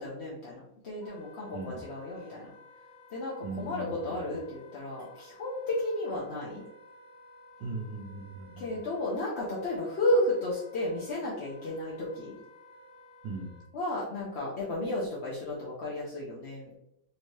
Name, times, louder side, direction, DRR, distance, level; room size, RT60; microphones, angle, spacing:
voice 1, 0.0-2.5 3.1-6.6 8.6-12.3 13.7-16.8, left 1 dB, 50° left, -6 dB, 0.9 m, -33 dB
Wind instrument woodwind instrument, 1.0-13.7, left 2 dB, 70° left, 1.8 m, -54 dB
voice 2, 1.5-1.8 3.4-4.4 7.6-8.8 13.2-13.6, right 3 dB, 75° right, -1 dB, 1.3 m, -39 dB
4.4 x 2.7 x 3.1 m, 0.82 s
omnidirectional pair, 2.0 m